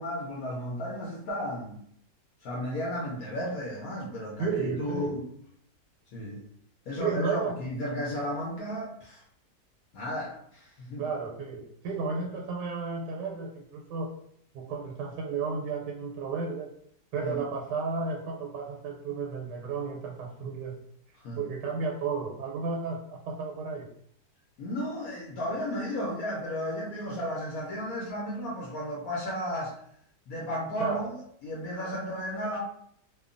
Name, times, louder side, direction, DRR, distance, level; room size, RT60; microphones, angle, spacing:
voice 1, 0.0-1.8 2.4-5.3 6.1-6.4 6.9-9.2 9.9-11.0 17.2-17.4 21.2-21.4 24.6-29.8 30.3-31.1 31.4-32.6, equal, 65° left, -4 dB, 0.9 m, -34 dB
voice 2, 4.4-5.2 7.0-7.6 11.0-14.2 14.5-16.7 17.1-20.8 21.4-23.9 30.8-31.1, right 4 dB, 90° right, -1 dB, 1.2 m, -33 dB
2.9 x 2.2 x 2.4 m, 0.67 s
omnidirectional pair, 1.8 m